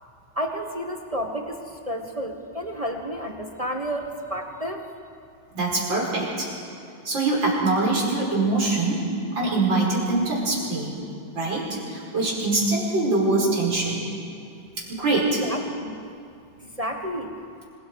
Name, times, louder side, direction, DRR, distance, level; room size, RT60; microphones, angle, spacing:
voice 1, 0.4-4.9 15.4-16.0 16.6-17.4, equal, 20° right, 2 dB, 1.1 m, -31 dB
voice 2, 5.5-6.5 7.0-9.0 9.4-10.9 11.3-14.0 15.0-15.4, right 2 dB, 65° right, -4 dB, 5.8 m, -23 dB
26.0 x 22.0 x 4.7 m, 2.4 s
omnidirectional pair, 2.2 m